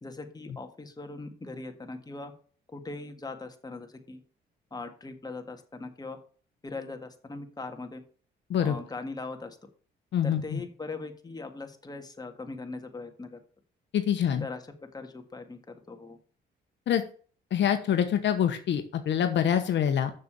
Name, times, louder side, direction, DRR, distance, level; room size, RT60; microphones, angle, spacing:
voice 1, 0.0-2.3 2.7-4.2 4.7-6.2 6.6-8.0 8.6-9.6 10.2-13.4 14.4-14.6 14.9-15.6 15.9-16.2, left 3 dB, 20° left, 5 dB, 1.8 m, -40 dB
voice 2, 10.1-10.6 13.9-14.5 16.9-17.0 17.5-20.1, left 9 dB, 65° left, 8 dB, 1.1 m, -25 dB
6.9 x 6.8 x 6.8 m, 0.43 s
cardioid pair, 90°, 20 cm